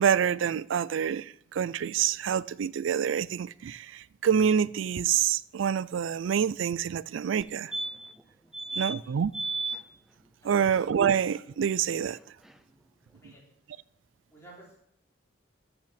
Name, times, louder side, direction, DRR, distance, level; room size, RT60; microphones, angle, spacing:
voice 1, 0.0-7.7 8.8-9.3 10.4-12.2, right 8 dB, 85° right, 0.4 m, -27 dB
sound 1, 7.4-7.5 7.7-8.2 8.5-9.0 9.3-9.8 12.2-12.3 12.5-12.6, right 3 dB, ahead, 0.5 m, -33 dB
voice 2, 8.4-8.9 10.4-10.7 13.1-13.4 14.3-14.8, right 2 dB, 15° left, 3.6 m, -54 dB
13.5 x 5.9 x 5.9 m
head